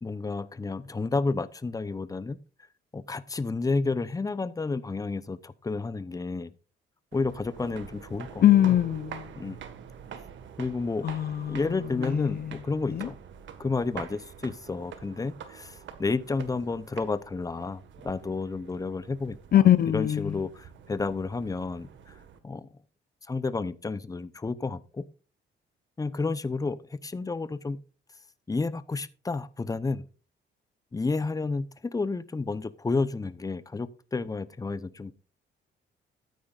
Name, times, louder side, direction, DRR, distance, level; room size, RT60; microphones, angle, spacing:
voice 1, 0.0-2.4 2.9-6.5 7.1-8.8 9.3-9.6 10.6-11.1 11.5-13.2 13.6-22.1 22.4-22.7 23.3-25.0 26.0-27.8 28.5-30.1 30.9-31.7 31.9-35.1, left 3 dB, 15° left, 0.8 m, -31 dB
sound 1, 7.1-22.4, right 7 dB, 70° right, 1.7 m, -46 dB
voice 2, 8.4-9.2 11.0-11.6 12.0-12.5 12.9-13.1 19.5-20.3, left 11 dB, 50° left, 0.6 m, -22 dB
13.0 x 9.5 x 2.5 m
cardioid pair, 90°, 20 cm